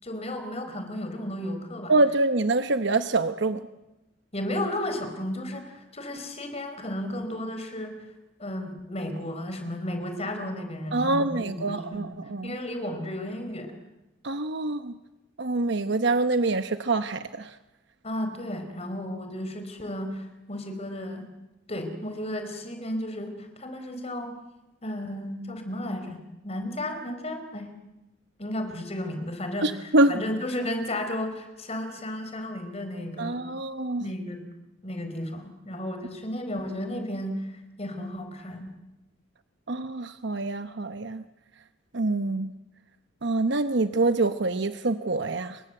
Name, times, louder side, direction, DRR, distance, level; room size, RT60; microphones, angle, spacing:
voice 1, 0.0-1.9 4.3-8.1 8.4-12.2 12.4-13.8 18.0-21.3 21.7-24.3 24.8-26.2 26.4-27.7 28.4-33.4 34.0-34.5 34.8-38.7, left 1 dB, 35° left, 7 dB, 4.7 m, -33 dB
voice 2, 1.9-3.6 10.9-12.6 14.2-14.9 15.4-17.6 29.6-30.2 33.2-34.0 39.7-41.2 41.9-42.5 43.2-45.6, right 2 dB, 65° right, 9 dB, 1.0 m, -25 dB
29.5 x 24.5 x 7.9 m, 0.99 s
head